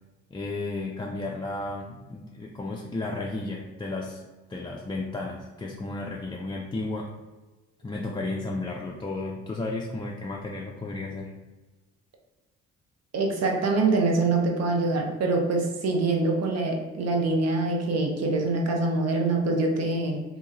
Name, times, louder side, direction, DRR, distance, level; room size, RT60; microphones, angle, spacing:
voice 1, 0.3-4.2 4.5-7.1 7.8-11.4, left 2 dB, 15° left, -2 dB, 0.4 m, -33 dB
voice 2, 13.1-20.2, right 3 dB, 55° right, 1 dB, 0.9 m, -24 dB
3.0 x 2.8 x 3.7 m, 1.2 s
cardioid pair, 90°, 30 cm